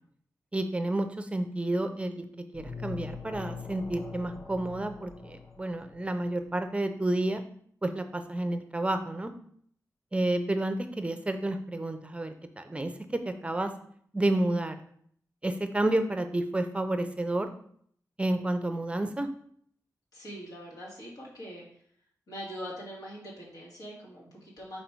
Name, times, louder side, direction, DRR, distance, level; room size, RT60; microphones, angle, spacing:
voice 1, 0.5-2.3 2.5-7.4 7.8-9.3 10.1-13.7 14.1-14.8 15.4-17.5 18.2-19.3, right 1 dB, 20° right, 7 dB, 0.5 m, -30 dB
sound 1, 2.5-6.3, left 5 dB, 50° left, 0.9 m, -42 dB
voice 2, 20.1-21.6 22.3-24.8, equal, 80° left, -4 dB, 2.3 m, -42 dB
5.3 x 4.2 x 4.5 m, 0.62 s
wide cardioid pair, 110°, 6 cm